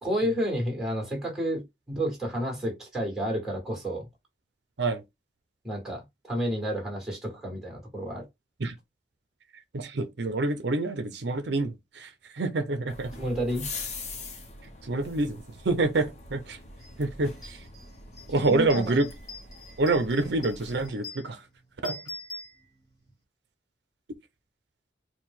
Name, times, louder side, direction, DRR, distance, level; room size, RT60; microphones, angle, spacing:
voice 1, 0.0-4.1 5.6-8.2 13.2-13.7 18.4-19.0, equal, ahead, 1.6 m, -30 dB
voice 2, 9.7-13.1 14.8-16.6 17.0-17.6 18.3-19.0 19.8-21.4 21.8-22.0, right 2 dB, 70° right, 0.6 m, -27 dB
sound 1, 12.9-20.9, left 3 dB, 40° left, 0.9 m, -43 dB
sound 2, 16.8-16.9 17.3-23.1, left 2 dB, 20° left, 1.2 m, -45 dB
4.6 x 2.2 x 3.5 m
head